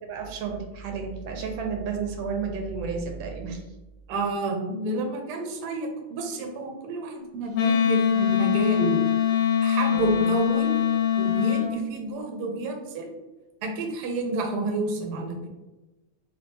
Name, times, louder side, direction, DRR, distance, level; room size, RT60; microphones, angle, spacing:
voice 1, 0.0-3.6 9.9-10.2, right 5 dB, 90° right, 2 dB, 1.4 m, -32 dB
voice 2, 4.1-9.0 9.6-10.7 11.1-13.1 13.6-15.5, right 3 dB, 65° right, 2 dB, 1.1 m, -30 dB
Wind instrument woodwind instrument, 7.5-11.7, left 9 dB, 65° left, 0.9 m, -22 dB
3.1 x 2.7 x 3.3 m, 1.1 s
omnidirectional pair, 2.1 m